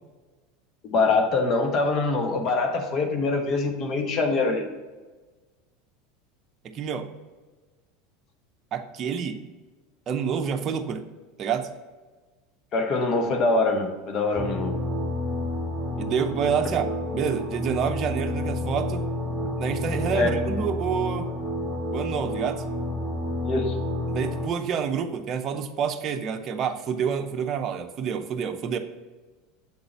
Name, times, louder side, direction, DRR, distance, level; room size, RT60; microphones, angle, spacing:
voice 1, 0.8-4.6 12.7-14.7 20.1-20.3 23.4-23.7, left 3 dB, 45° left, 4 dB, 1.1 m, -24 dB
voice 2, 6.6-7.1 8.7-9.4 10.1-11.0 11.4-11.7 16.0-19.0 19.6-21.3 21.9-22.6 24.1-28.8, right 7 dB, 40° right, 5 dB, 0.6 m, -28 dB
sound 1, 14.4-24.5, left 1 dB, 10° left, 1.4 m, -29 dB
7.3 x 4.0 x 4.4 m, 1.3 s
hypercardioid pair, 90°, 0 cm